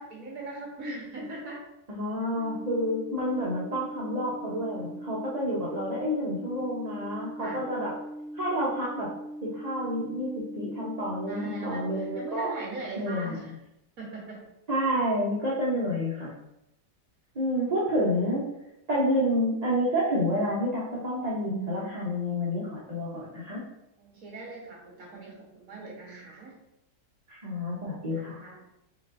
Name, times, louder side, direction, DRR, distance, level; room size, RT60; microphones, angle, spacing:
voice 1, 0.0-1.6 7.4-7.6 11.3-13.5 14.0-14.4 24.0-26.6 28.1-28.6, right 2 dB, 55° right, -3 dB, 1.7 m, -40 dB
voice 2, 1.9-7.9 8.3-9.1 9.4-12.5 13.0-13.5 14.7-16.3 17.3-18.4 18.9-23.6 27.3-28.4, equal, 35° right, -7 dB, 0.7 m, -29 dB
sound 1, 2.4-12.4, equal, 55° left, 1.9 m, -40 dB
4.5 x 3.8 x 2.6 m, 0.84 s
omnidirectional pair, 1.8 m